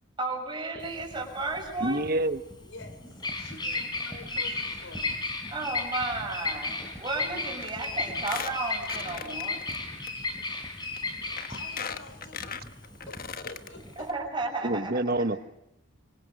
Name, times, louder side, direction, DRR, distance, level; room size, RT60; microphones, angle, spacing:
voice 1, 0.2-2.0 5.5-9.6 14.0-15.4, right 3 dB, 25° right, 1 dB, 6.3 m, -33 dB
sound 1, 0.7-14.8, equal, ahead, 3.5 m, -48 dB
Bird vocalization bird call bird song, 0.8-14.1, left 3 dB, 20° left, 4.1 m, -34 dB
voice 2, 1.8-2.4 14.6-15.4, right 1 dB, 50° right, 11 dB, 1.2 m, -27 dB
voice 3, 2.6-3.1 3.4-5.1 11.5-12.6 13.1-14.1, left 3 dB, 75° left, 9 dB, 4.4 m, -47 dB
Squeak, 7.6-7.9 8.2-9.8 10.1-10.2 10.9-11.0 11.4-13.7 14.1-14.2 14.4-14.5, left 6 dB, 45° left, 1.3 m, -38 dB
26.0 x 25.0 x 6.6 m, 0.85 s
head